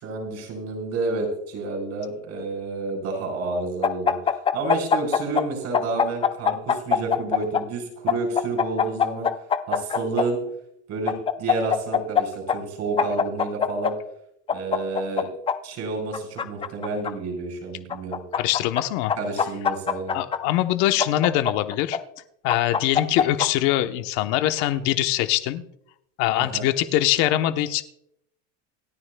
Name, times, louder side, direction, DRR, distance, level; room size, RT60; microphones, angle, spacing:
voice 1, 0.0-4.2 4.5-9.3 9.7-10.4 10.9-13.9 14.5-15.3 15.6-18.2 19.2-20.2 26.5-26.7, right 3 dB, 45° right, 2 dB, 4.5 m, -29 dB
sound 1, 3.8-5.4 5.7-7.6 8.1-10.2 11.1-12.2 12.5-12.6 13.0-13.9 14.5-15.5 16.1-17.1 17.9-18.8 19.1-20.4 21.0-22.0 22.5-23.5, left 7 dB, 15° left, 0.4 m, -22 dB
voice 2, 18.4-19.1 20.1-22.0 22.4-25.6 26.2-27.8, left 14 dB, 60° left, 9 dB, 1.1 m, -23 dB
27.0 x 9.9 x 2.3 m, 0.75 s
supercardioid pair, 135°, 37 cm